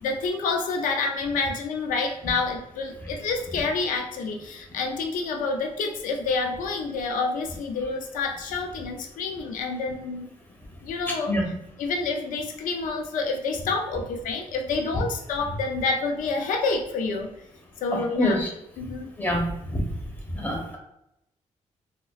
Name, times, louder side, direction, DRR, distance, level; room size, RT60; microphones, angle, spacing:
voice 1, 0.0-10.3 10.8-17.3 17.8-18.4 18.8-19.1, left 4 dB, 90° left, 3 dB, 0.5 m, -28 dB
voice 2, 18.2-18.5 19.2-19.4 19.7-19.8 20.3-20.8, left 1 dB, 15° left, -1 dB, 1.2 m, -25 dB
3.8 x 2.9 x 2.4 m, 0.81 s
cardioid pair, 85°, 13 cm